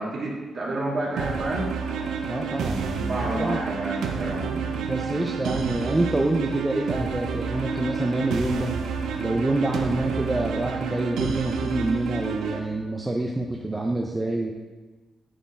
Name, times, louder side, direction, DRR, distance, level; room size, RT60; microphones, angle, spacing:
voice 1, 0.0-1.7 2.9-4.5, right 1 dB, 40° right, -5 dB, 2.0 m, -29 dB
sound 1, 1.2-12.6, right 5 dB, 85° right, 0.7 m, -29 dB
voice 2, 2.2-3.6 4.1-8.7 9.2-14.5, right 2 dB, 15° right, 1 dB, 0.4 m, -27 dB
9.0 x 4.3 x 4.2 m, 1.3 s
cardioid pair, 150°, 0 cm